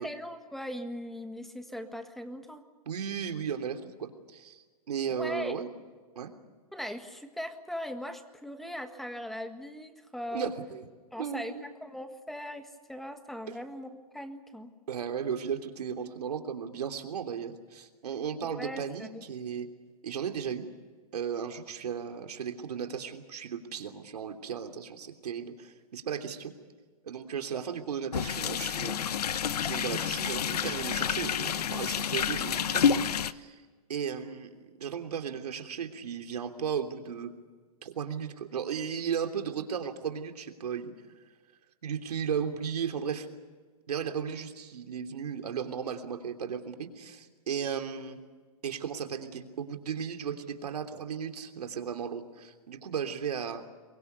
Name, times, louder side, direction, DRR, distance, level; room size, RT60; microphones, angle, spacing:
voice 1, 0.0-2.6 5.1-5.6 6.7-10.5 11.1-14.7 18.5-19.2, equal, ahead, 7 dB, 1.6 m, -39 dB
voice 2, 2.8-5.7 6.1-6.3 10.3-10.9 11.2-11.6 14.9-19.7 20.0-20.7 21.1-26.5 27.0-29.1 29.6-33.6 33.9-37.3 37.8-40.9 41.8-43.3 43.9-48.2 48.6-53.6, right 7 dB, 85° right, 5 dB, 3.2 m, -35 dB
sound 1, 28.1-33.3, left 8 dB, 90° left, 1.0 m, -29 dB
27.0 x 23.5 x 6.9 m, 1.4 s
hypercardioid pair, 150°, 19 cm